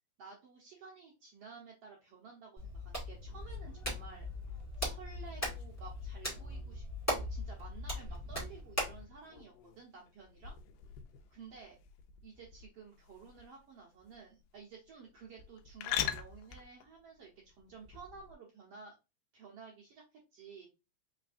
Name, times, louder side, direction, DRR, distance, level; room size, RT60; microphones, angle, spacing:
voice 1, 0.2-4.3 4.8-10.6 11.3-11.8 12.2-19.0 19.3-20.7, right 5 dB, 85° right, -2 dB, 1.3 m, -53 dB
Hands, 2.6-9.0, equal, 15° left, 0.5 m, -39 dB
sound 1, 3.3-18.3, left 10 dB, 80° left, 2.1 m, -46 dB
5.2 x 3.2 x 2.5 m, 0.27 s
omnidirectional pair, 4.1 m